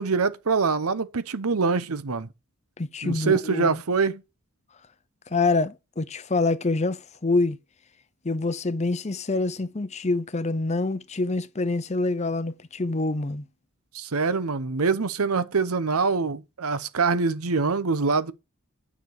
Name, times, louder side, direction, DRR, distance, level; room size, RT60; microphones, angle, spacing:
voice 1, 0.0-2.3 3.0-4.2 13.9-18.3, right 4 dB, 80° right, 0.9 m, -24 dB
voice 2, 2.8-3.7 5.3-7.6 8.2-13.4, left 3 dB, 30° left, 0.7 m, -26 dB
9.5 x 6.1 x 6.5 m
head